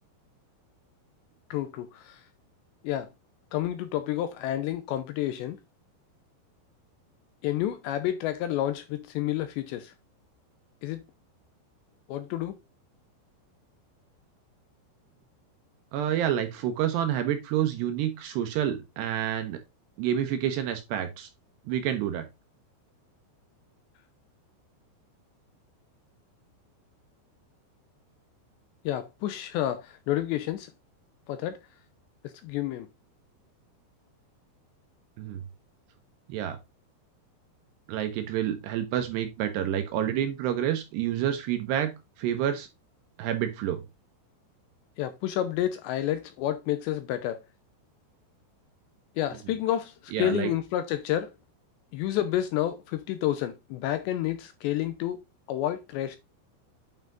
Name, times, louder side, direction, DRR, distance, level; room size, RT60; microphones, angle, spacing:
voice 1, 1.5-2.2 2.8-3.1 3.5-5.6 7.4-9.9 10.8-11.0 12.1-12.6 28.9-30.7 31.3-31.6 32.2-32.9 45.0-47.4 49.2-51.3 51.9-55.2 55.5-56.2, left 12 dB, 85° left, 2.7 m, -30 dB
voice 2, 15.9-19.6 20.0-21.3 21.7-22.3 35.2-35.4 36.3-36.6 37.9-41.9 42.2-42.7 43.2-43.8 50.1-50.5, right 10 dB, 75° right, 2.7 m, -28 dB
9.1 x 5.6 x 2.5 m
omnidirectional pair, 5.6 m